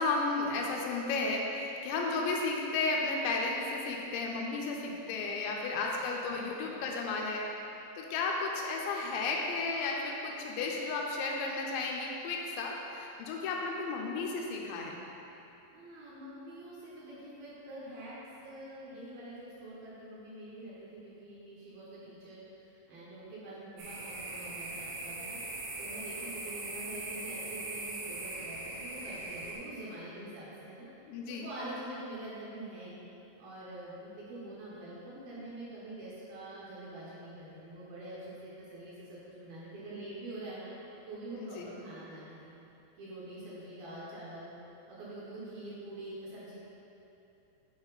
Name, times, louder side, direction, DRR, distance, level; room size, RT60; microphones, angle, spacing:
voice 1, 0.0-7.5 8.0-15.0 31.1-31.5 41.4-41.7, left 3 dB, 80° left, -1 dB, 2.8 m, -33 dB
voice 2, 5.4-5.8 15.7-18.2 18.4-22.4 22.9-25.4 25.8-30.9 31.3-33.0 33.4-40.7 41.1-42.6 43.0-44.5 44.9-46.5, right 1 dB, 70° right, -8 dB, 2.5 m, -45 dB
sound 1, 23.8-29.5, right 2 dB, 90° right, 3.7 m, -40 dB
8.8 x 4.7 x 3.9 m, 2.9 s
omnidirectional pair, 5.2 m